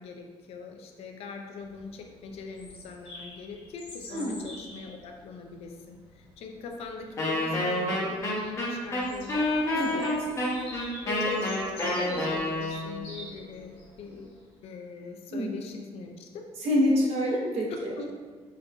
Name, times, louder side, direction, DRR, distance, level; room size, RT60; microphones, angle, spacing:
voice 1, 0.0-14.3 14.6-16.5 18.0-18.1, left 4 dB, 70° left, 3 dB, 0.4 m, -41 dB
Bird vocalization bird call bird song, 1.6-14.3, left 1 dB, 55° left, 1.3 m, -48 dB
voice 2, 4.1-4.4 9.8-10.0 15.3-15.6 16.6-17.9, equal, 75° right, -4 dB, 0.9 m, -26 dB
Wind instrument woodwind instrument, 7.2-13.0, left 1 dB, 30° left, 0.9 m, -28 dB
4.4 x 2.6 x 2.3 m, 1.5 s
cardioid pair, 140°, 11 cm